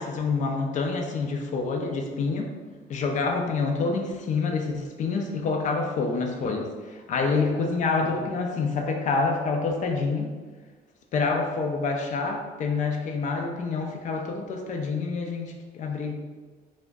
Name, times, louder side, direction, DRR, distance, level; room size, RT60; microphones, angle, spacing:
voice 1, 0.0-2.5 2.9-6.7 7.1-10.3 11.1-16.1, left 4 dB, 50° left, 3 dB, 0.4 m, -27 dB
2.3 x 2.1 x 3.4 m, 1.4 s
cardioid pair, 110°, 17 cm